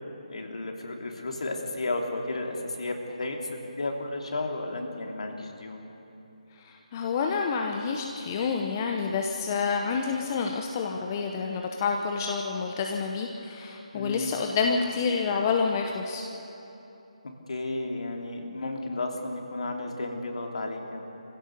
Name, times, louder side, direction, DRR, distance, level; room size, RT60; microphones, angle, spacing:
voice 1, 0.3-5.8 13.9-14.4 17.5-21.0, left 2 dB, 60° left, 2 dB, 2.9 m, -33 dB
voice 2, 6.6-16.2, left 5 dB, 30° left, 2 dB, 1.1 m, -28 dB
24.0 x 16.0 x 6.8 m, 3.0 s
figure-of-eight pair, 150°, 4 cm